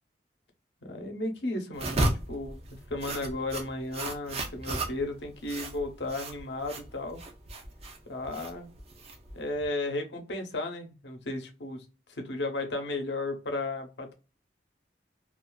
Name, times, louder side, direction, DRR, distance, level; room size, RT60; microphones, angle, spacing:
voice 1, 0.8-2.6 2.9-7.2 8.1-8.7 9.3-14.1, left 2 dB, 75° left, 4 dB, 0.7 m, -34 dB
sound 1, 1.7-9.7, right 2 dB, 35° right, 0.5 m, -34 dB
2.4 x 2.4 x 2.2 m, 0.31 s
head